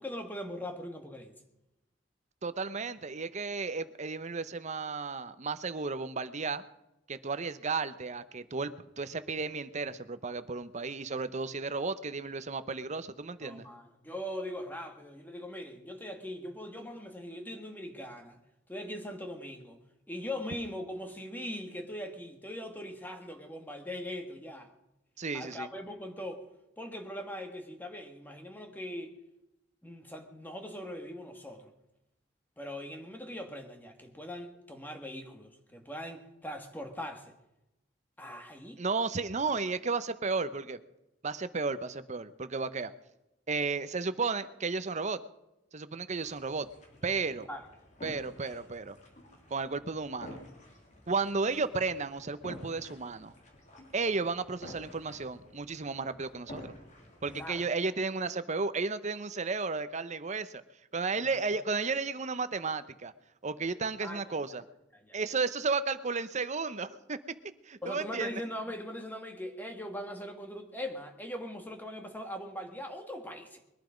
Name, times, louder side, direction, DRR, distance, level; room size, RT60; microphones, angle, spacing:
voice 1, 0.0-1.3 13.4-18.4 18.7-19.8 20.1-24.7 25.3-26.5 26.8-29.1 29.8-31.7 32.6-37.3 38.2-38.8 47.5-47.7 57.2-57.7 61.2-61.6 64.0-64.4 64.9-65.2 67.8-73.6, left 1 dB, 10° left, 1.7 m, -41 dB
voice 2, 2.4-6.6 7.1-13.7 25.2-25.7 38.8-40.8 41.2-42.9 43.5-45.2 45.7-46.7 47.0-47.5 48.0-49.0 49.5-50.4 51.1-53.3 53.9-56.7 57.2-60.6 60.9-63.1 63.4-64.6 65.1-67.2 67.7-68.4, right 4 dB, 40° right, 0.8 m, -33 dB
sound 1, 46.2-57.4, left 1 dB, 40° left, 3.2 m, -51 dB
21.5 x 11.0 x 5.2 m
head